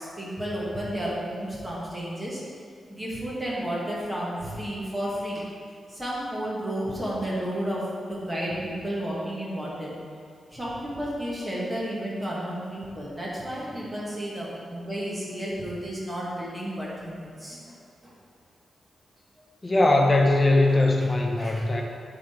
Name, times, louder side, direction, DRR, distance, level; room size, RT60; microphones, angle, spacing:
voice 1, 0.0-2.4 2.9-5.4 5.9-9.9 10.5-17.7 18.0-18.1 19.4-19.5 20.7-21.7, equal, 10° right, -6 dB, 1.6 m, -32 dB
voice 2, 19.6-21.8, left 2 dB, 20° left, 1 dB, 0.8 m, -20 dB
8.4 x 3.7 x 4.4 m, 2.2 s
wide cardioid pair, 140°, 0 cm